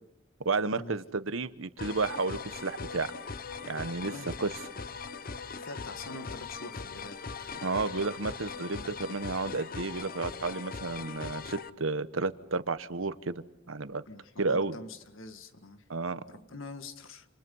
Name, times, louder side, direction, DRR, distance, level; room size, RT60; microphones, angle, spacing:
voice 1, 0.4-3.1 3.7-4.5 7.6-14.0 14.4-14.8 15.9-16.2, right 3 dB, 85° right, 13 dB, 1.1 m, -32 dB
sound 1, 1.8-11.7, left 5 dB, 50° left, 0.9 m, -40 dB
voice 2, 4.0-4.3 5.5-7.5 14.1-15.8 16.3-17.3, left 2 dB, 85° left, 9 dB, 1.9 m, -45 dB
28.5 x 28.0 x 5.6 m, 0.83 s
head